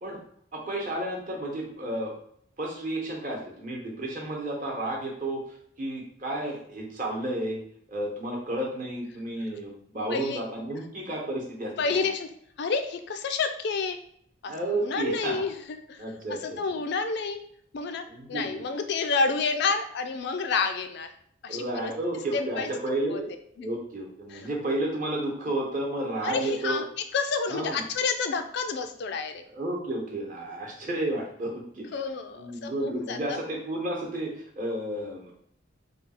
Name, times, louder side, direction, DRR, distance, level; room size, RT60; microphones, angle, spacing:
voice 1, 0.5-2.1 2.6-7.6 7.9-12.1 14.4-15.5 16.0-16.8 18.1-18.6 21.5-23.3 23.6-26.8 27.5-27.8 29.5-31.8 32.3-35.3, right 1 dB, 40° right, -1 dB, 0.9 m, -32 dB
voice 2, 10.1-10.4 11.8-12.3 12.6-14.0 14.4-14.5 14.8-15.5 15.9-16.0 16.4-17.4 17.7-21.1 21.4-21.9 22.3-22.7 23.1-23.2 23.6-23.7 24.3-24.5 26.2-26.9 27.1-29.4 31.9-33.4, left 4 dB, 55° left, 8 dB, 0.3 m, -29 dB
3.3 x 2.3 x 4.2 m, 0.66 s
head